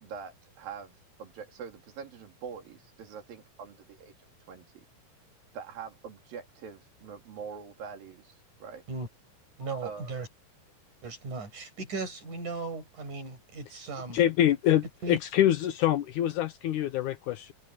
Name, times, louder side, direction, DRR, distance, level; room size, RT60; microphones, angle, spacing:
voice 1, 0.0-4.1 4.5-4.7 5.5-8.3 8.6-8.8 9.8-10.1, right 6 dB, 80° right, 4.3 m, -43 dB
voice 2, 9.6-10.3 11.0-14.2 15.0-15.2, right 3 dB, 55° right, 8.7 m, -37 dB
voice 3, 14.1-17.5, left 12 dB, 75° left, 2.0 m, -25 dB
omnidirectional pair, 4.1 m